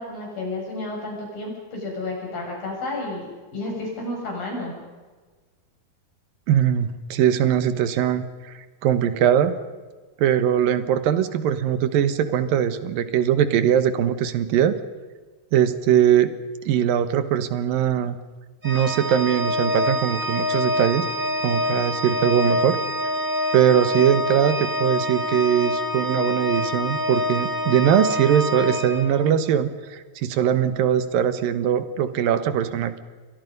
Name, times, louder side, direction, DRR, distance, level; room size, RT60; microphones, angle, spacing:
voice 1, 0.0-4.8, left 2 dB, 80° left, -1 dB, 9.3 m, -31 dB
voice 2, 6.5-8.5 8.8-9.6 10.2-14.7 15.5-16.3 16.7-18.2 18.6-21.1 21.4-22.8 23.5-33.0, right 9 dB, 80° right, 12 dB, 3.0 m, -21 dB
Organ, 18.6-29.5, left 1 dB, 30° right, 5.0 m, -26 dB
29.5 x 23.5 x 5.4 m, 1.4 s
omnidirectional pair, 4.0 m